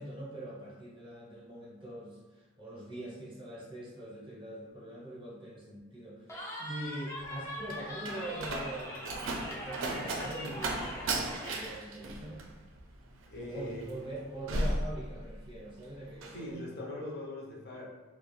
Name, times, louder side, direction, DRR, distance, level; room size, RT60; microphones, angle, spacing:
voice 1, 0.0-9.0 9.5-12.4 13.4-16.6, right 1 dB, 25° right, -5 dB, 0.7 m, -43 dB
Cheering, 6.3-11.8, equal, 15° left, 0.4 m, -42 dB
Slam, 7.2-15.6 15.9-16.4, right 2 dB, 70° right, 0.4 m, -36 dB
voice 2, 13.3-13.9 16.3-17.9, left 1 dB, 50° left, -3 dB, 0.6 m, -41 dB
2.3 x 2.1 x 3.0 m, 1.2 s
head